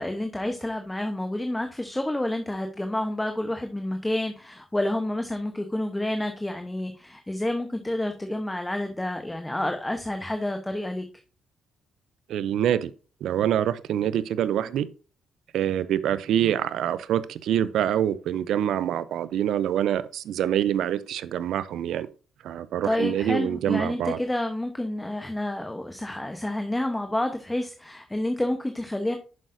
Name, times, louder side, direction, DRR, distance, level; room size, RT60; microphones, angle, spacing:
voice 1, 0.0-11.1 22.8-29.2, left 1 dB, 10° left, 0.9 m, -29 dB
voice 2, 12.3-12.9 13.2-14.9 15.5-22.1 22.4-24.2, right 10 dB, 75° right, 0.5 m, -25 dB
7.5 x 6.3 x 2.6 m
cardioid pair, 90°, 0 cm